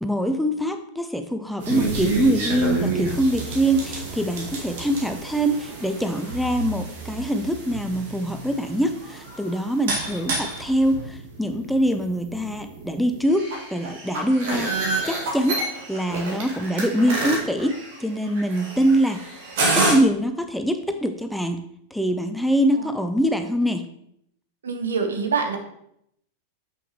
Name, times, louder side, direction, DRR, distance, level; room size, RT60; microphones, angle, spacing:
voice 1, 0.0-14.8 15.1-19.2 19.8-21.6 21.9-23.9, right 1 dB, ahead, 7 dB, 0.5 m, -24 dB
sound 1, 1.6-19.9, right 3 dB, 55° right, 1.9 m, -29 dB
voice 2, 24.6-25.6, right 5 dB, 70° right, 5 dB, 1.0 m, -25 dB
7.0 x 5.8 x 3.0 m, 0.73 s
figure-of-eight pair, 90°, 0 cm